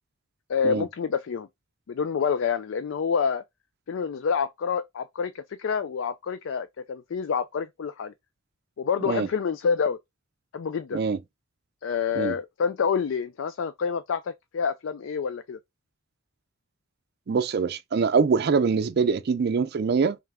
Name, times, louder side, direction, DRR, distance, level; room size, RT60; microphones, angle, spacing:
voice 1, 0.5-1.5 1.9-3.4 3.9-8.1 8.8-10.0 10.5-11.0 11.8-15.6, left 6 dB, 70° left, 0.4 m, -27 dB
voice 2, 17.3-20.2, right 5 dB, 55° right, 0.4 m, -24 dB
3.5 x 3.2 x 3.3 m
head